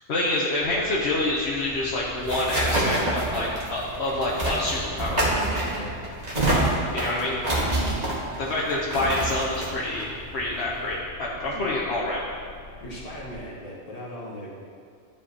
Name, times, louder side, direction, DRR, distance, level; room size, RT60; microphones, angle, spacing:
voice 1, 0.1-5.3 6.9-7.4 8.4-12.2, left 2 dB, 65° left, -5 dB, 1.1 m, -27 dB
sound 1, 0.6-13.4, left 1 dB, 5° left, 1.5 m, -46 dB
sound 2, 1.6-10.9, right 1 dB, 35° right, 1.4 m, -27 dB
voice 2, 6.3-6.7 7.7-8.0 11.5-11.6 12.8-14.6, left 1 dB, 30° left, -5 dB, 1.5 m, -38 dB
11.0 x 5.0 x 2.8 m, 2.3 s
omnidirectional pair, 1.2 m